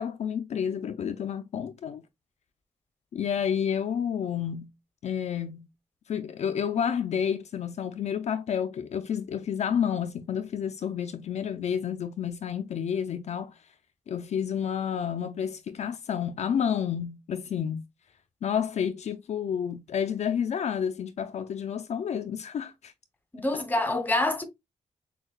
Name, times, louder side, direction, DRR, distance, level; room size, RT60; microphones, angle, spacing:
voice 1, 0.0-2.0 3.1-4.7 5.0-5.7 6.1-13.6 14.1-17.8 18.4-22.9 23.5-23.6, left 8 dB, 55° left, 0.4 m, -30 dB
voice 2, 23.3-24.4, left 2 dB, 15° left, 0.8 m, -26 dB
6.3 x 2.2 x 2.3 m
wide cardioid pair, 155°, 13 cm